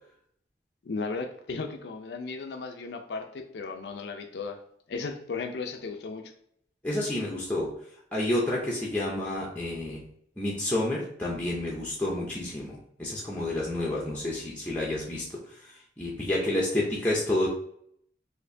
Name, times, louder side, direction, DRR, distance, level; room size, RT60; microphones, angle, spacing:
voice 1, 0.8-4.6 4.9-6.3, left 4 dB, 65° left, 5 dB, 0.4 m, -35 dB
voice 2, 6.8-7.8 8.1-10.0 10.4-17.5, left 1 dB, 10° left, -5 dB, 0.5 m, -30 dB
4.3 x 2.6 x 2.6 m, 0.68 s
head